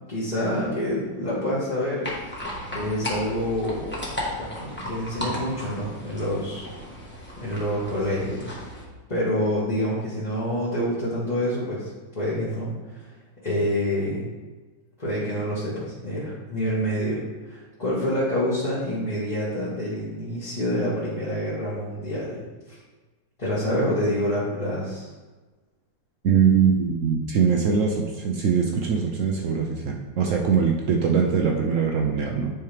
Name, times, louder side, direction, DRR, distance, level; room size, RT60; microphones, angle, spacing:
voice 1, 0.1-2.1 2.7-4.0 4.4-6.7 7.4-8.6 9.1-13.1 13.4-14.2 15.0-17.2 17.4-22.8 23.4-25.1, equal, 25° left, -10 dB, 1.5 m, -27 dB
sound 1, 2.0-8.8, left 1 dB, 5° left, 1.2 m, -35 dB
voice 2, 26.2-32.5, right 6 dB, 65° right, 1 dB, 0.8 m, -22 dB
9.2 x 4.5 x 3.4 m, 1.3 s
omnidirectional pair, 2.0 m